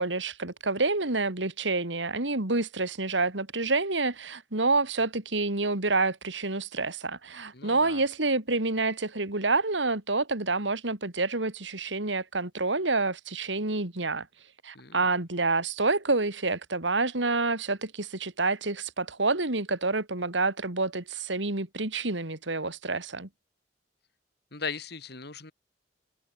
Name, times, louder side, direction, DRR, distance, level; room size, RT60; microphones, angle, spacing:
voice 1, 0.0-14.3 14.6-23.3, right 3 dB, 90° right, 3.0 m, -28 dB
voice 2, 7.5-8.0 14.7-15.1 24.5-25.5, left 5 dB, 60° left, 3.0 m, -38 dB
head